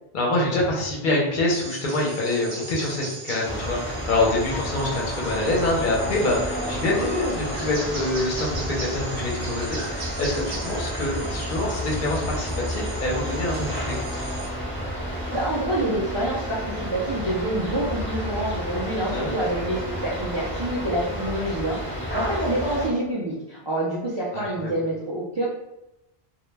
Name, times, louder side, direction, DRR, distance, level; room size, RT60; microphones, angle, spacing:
voice 1, 0.1-14.1 19.1-19.3 21.9-22.0 24.3-24.7, left 2 dB, 60° left, -2 dB, 0.7 m, -26 dB
sound 1, 1.5-14.5, right 2 dB, 75° right, 0.9 m, -39 dB
sound 2, 3.4-22.9, equal, 15° left, 0.5 m, -31 dB
voice 2, 15.3-25.4, right 1 dB, 45° right, -7 dB, 0.3 m, -27 dB
2.1 x 2.1 x 3.1 m, 0.93 s
omnidirectional pair, 1.0 m